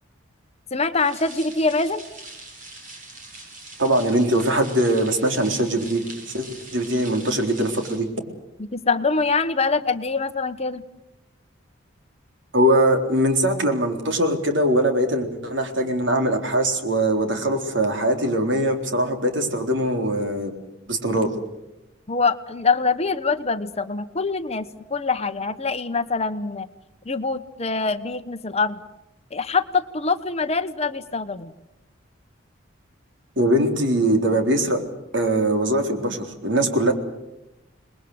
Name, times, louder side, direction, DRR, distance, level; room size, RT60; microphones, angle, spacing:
voice 1, 0.7-2.0 8.6-10.8 22.1-26.7 27.0-28.8 29.3-31.5, left 4 dB, 35° left, 11 dB, 1.1 m, -24 dB
sound 1, 0.9-8.0, right 2 dB, 40° right, 7.8 m, -42 dB
voice 2, 3.8-6.5 6.7-8.1 12.5-20.5 20.9-21.3 33.4-34.8 35.1-36.9, right 1 dB, 70° right, 5 dB, 3.9 m, -21 dB
28.5 x 21.0 x 8.1 m, 0.93 s
head